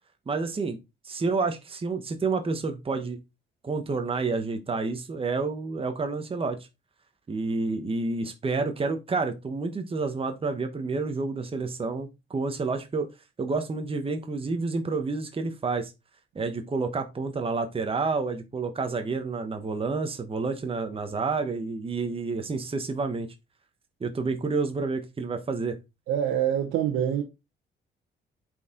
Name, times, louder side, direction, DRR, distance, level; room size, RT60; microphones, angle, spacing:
voice 1, 0.3-0.8 1.0-3.2 3.6-6.6 7.3-13.1 13.4-15.9 16.3-23.3 24.0-25.8, right 4 dB, 30° right, 1.1 m, -29 dB
voice 2, 26.1-27.2, right 10 dB, 90° right, 1.0 m, -25 dB
8.0 x 4.6 x 3.8 m
cardioid pair, 90°, 20 cm